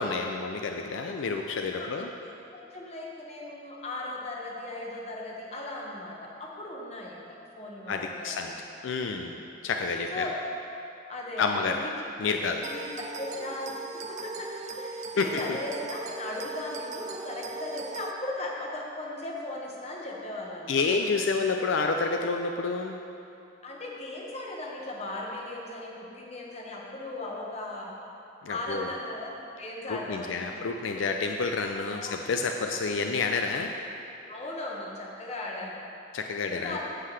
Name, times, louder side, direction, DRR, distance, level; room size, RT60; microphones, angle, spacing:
voice 1, 0.0-2.1 7.9-8.5 8.8-9.4 9.6-10.2 11.4-11.8 12.2-12.6 15.2-15.4 20.7-23.0 28.4-28.9 29.9-33.7 36.1-36.8, left 4 dB, 75° left, 4 dB, 0.4 m, -29 dB
voice 2, 1.7-7.2 7.5-8.5 9.3-9.5 10.1-10.3 11.1-11.7 12.6-20.8 23.6-27.9 28.5-30.5 32.0-32.1 34.2-35.8 36.5-36.8, left 2 dB, 30° left, -2 dB, 1.1 m, -37 dB
sound 1, 12.6-18.1, right 3 dB, 35° right, 0.4 m, -39 dB
15.5 x 5.7 x 3.3 m, 2.8 s
head